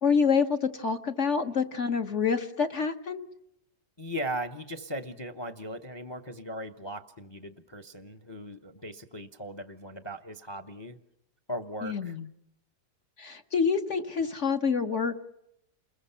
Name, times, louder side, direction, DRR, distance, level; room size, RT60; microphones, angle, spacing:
voice 1, 0.0-3.3 11.8-12.3 13.2-15.2, left 5 dB, 45° left, 7 dB, 1.3 m, -27 dB
voice 2, 4.0-11.0 11.5-12.2, equal, 20° left, 10 dB, 0.8 m, -38 dB
29.5 x 21.5 x 5.7 m, 0.79 s
omnidirectional pair, 1.8 m